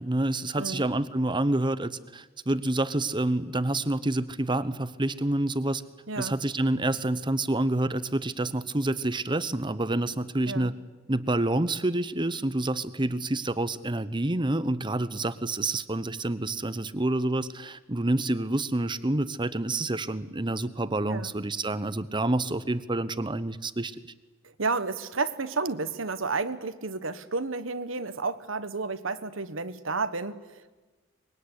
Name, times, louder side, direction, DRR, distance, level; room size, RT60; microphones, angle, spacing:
voice 1, 0.0-5.8 6.2-10.7 11.1-24.0, right 2 dB, 25° right, 14 dB, 1.0 m, -28 dB
voice 2, 0.5-0.9 6.1-6.4 10.4-10.7 21.0-21.3 24.4-30.7, right 3 dB, 80° right, 12 dB, 1.4 m, -31 dB
24.5 x 22.0 x 10.0 m, 1.2 s
head